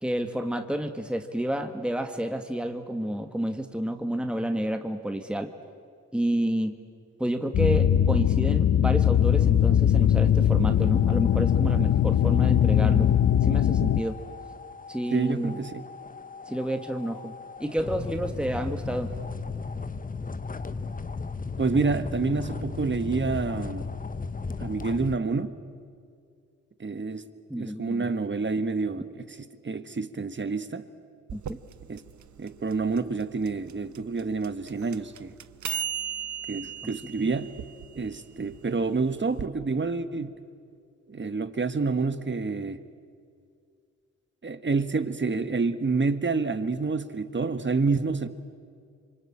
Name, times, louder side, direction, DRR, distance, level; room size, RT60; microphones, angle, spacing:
voice 1, 0.0-5.5 6.1-6.7 7.2-13.1 13.4-14.2 14.9-15.6 16.5-17.3 17.6-19.1 27.5-28.1 31.3-31.6 37.1-37.3, right 1 dB, 5° right, 1.8 m, -30 dB
sound 1, 7.5-14.0, left 10 dB, 65° left, 0.8 m, -21 dB
sound 2, 10.8-25.2, left 4 dB, 30° left, 1.0 m, -37 dB
voice 2, 15.1-15.7 21.6-23.8 24.6-25.6 26.8-27.2 27.6-29.4 29.6-30.8 31.9-32.0 32.4-35.3 36.5-37.5 37.9-40.3 41.1-42.8 44.4-48.3, right 4 dB, 40° right, 1.6 m, -28 dB
sound 3, 31.3-39.5, right 9 dB, 75° right, 0.9 m, -37 dB
27.0 x 24.5 x 8.9 m
cardioid pair, 55°, 29 cm